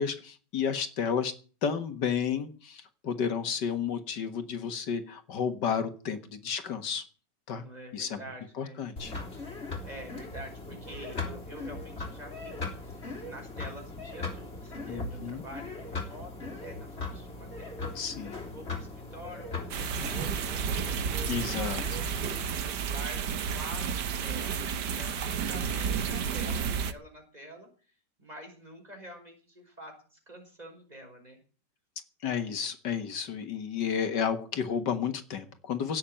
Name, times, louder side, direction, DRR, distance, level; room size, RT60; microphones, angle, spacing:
voice 1, 0.0-1.3 1.6-7.0 7.5-7.6 7.9-8.2 8.6-9.1 14.9-15.4 17.9-18.4 21.3-22.0 32.2-36.0, left 7 dB, 80° left, 9 dB, 2.2 m, -32 dB
voice 2, 7.5-8.9 9.8-18.1 18.3-27.7 28.2-31.4, equal, 20° right, 3 dB, 5.6 m, -48 dB
sound 1, 9.0-22.5, left 3 dB, 35° left, 3.7 m, -39 dB
sound 2, 19.7-26.9, right 7 dB, 75° right, 1.7 m, -31 dB
17.0 x 7.3 x 8.9 m, 0.38 s
omnidirectional pair, 1.8 m